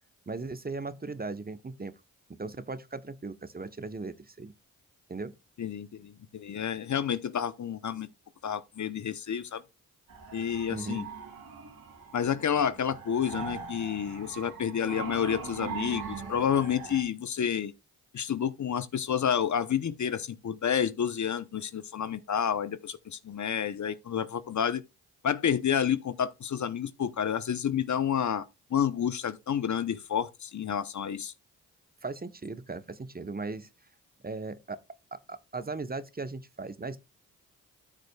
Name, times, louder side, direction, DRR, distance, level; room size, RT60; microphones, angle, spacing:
voice 1, 0.3-1.9 2.4-4.5 5.1-5.3 10.7-11.1 32.0-33.7 34.2-34.8 35.3-37.0, right 3 dB, 25° right, 1.0 m, -37 dB
voice 2, 5.6-8.1 8.4-9.6 10.3-11.1 12.1-17.7 18.1-24.8 25.2-28.5 28.7-31.3, left 8 dB, 50° left, 0.8 m, -29 dB
sound 1, 10.1-17.0, right 6 dB, 70° right, 2.6 m, -41 dB
13.0 x 6.5 x 2.3 m
supercardioid pair, 45°, 37 cm